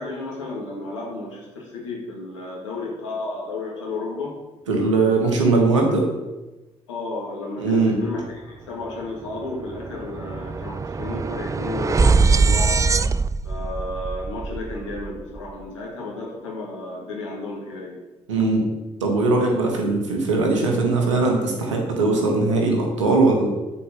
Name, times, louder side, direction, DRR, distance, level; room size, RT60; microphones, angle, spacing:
voice 1, 0.0-4.3 6.9-12.9 13.4-18.0, left 2 dB, 90° left, -3 dB, 2.1 m, -32 dB
voice 2, 4.7-6.1 7.6-8.0 18.3-18.6 19.0-23.5, right 3 dB, 90° right, 1 dB, 1.5 m, -20 dB
sound 1, 8.8-9.0 9.3-15.5, right 4 dB, 20° right, 0.4 m, -23 dB
8.4 x 4.7 x 7.1 m, 1.1 s
hypercardioid pair, 45°, 15 cm